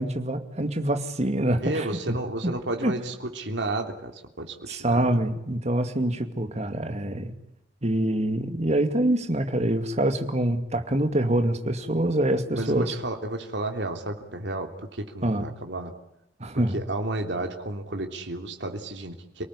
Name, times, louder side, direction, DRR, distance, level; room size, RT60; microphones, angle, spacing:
voice 1, 0.0-2.2 2.4-2.5 2.8-2.9 4.7-7.3 7.8-13.0 15.2-15.5 16.4-16.8, right 1 dB, 40° right, 8 dB, 2.5 m, -25 dB
voice 2, 1.6-5.2 12.5-15.9 16.7-19.4, right 2 dB, 75° right, 4 dB, 3.2 m, -32 dB
29.0 x 19.0 x 9.9 m, 0.82 s
head